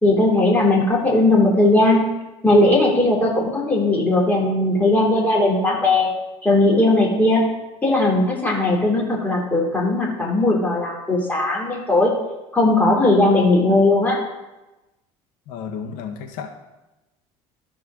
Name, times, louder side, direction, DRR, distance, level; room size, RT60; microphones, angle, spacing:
voice 1, 0.0-2.1 2.4-6.1 6.4-7.5 7.8-12.1 12.5-14.2, left 2 dB, 10° left, -2 dB, 3.0 m, -18 dB
voice 2, 15.5-16.5, left 6 dB, 75° left, 3 dB, 1.6 m, -32 dB
13.0 x 4.7 x 6.2 m, 1.0 s
cardioid pair, 125°, 14 cm